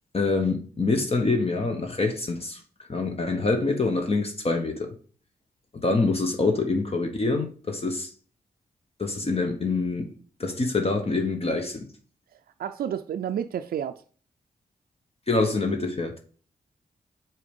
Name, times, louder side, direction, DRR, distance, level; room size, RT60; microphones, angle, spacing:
voice 1, 0.1-2.6 2.9-5.0 5.7-8.1 9.0-10.1 10.4-11.9 15.3-16.2, left 3 dB, 40° left, 1.1 m, -25 dB
voice 2, 12.6-14.0, right 9 dB, 80° right, 0.4 m, -30 dB
4.8 x 4.5 x 5.2 m
cardioid pair, 60°, 15 cm